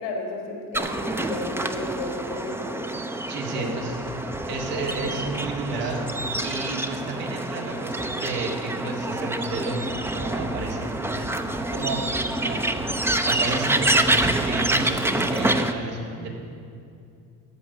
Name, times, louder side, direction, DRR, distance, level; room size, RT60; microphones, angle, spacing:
voice 1, 0.0-2.8 3.5-4.0 4.7-5.2, left 2 dB, 90° left, 1 dB, 2.5 m, -34 dB
sound 1, 0.7-15.7, right 1 dB, 5° right, 0.5 m, -27 dB
voice 2, 3.3-4.0 4.5-6.0 6.4-11.4 11.7-12.0 12.4-12.7 13.2-16.3, right 3 dB, 90° right, -1 dB, 2.2 m, -31 dB
14.0 x 5.2 x 8.0 m, 2.5 s
supercardioid pair, 85°, 45 cm